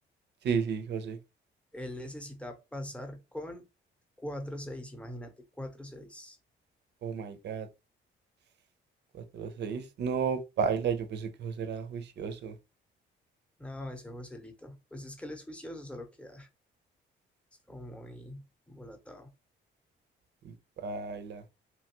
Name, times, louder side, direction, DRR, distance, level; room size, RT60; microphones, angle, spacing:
voice 1, 0.4-1.2 7.0-7.7 9.3-12.5 20.4-20.5 20.8-21.4, right 6 dB, 60° right, 0.6 m, -32 dB
voice 2, 1.7-3.6 4.2-6.4 13.6-16.5 17.7-19.3, left 1 dB, 5° left, 0.8 m, -42 dB
3.0 x 2.2 x 2.9 m
cardioid pair, 90°, 20 cm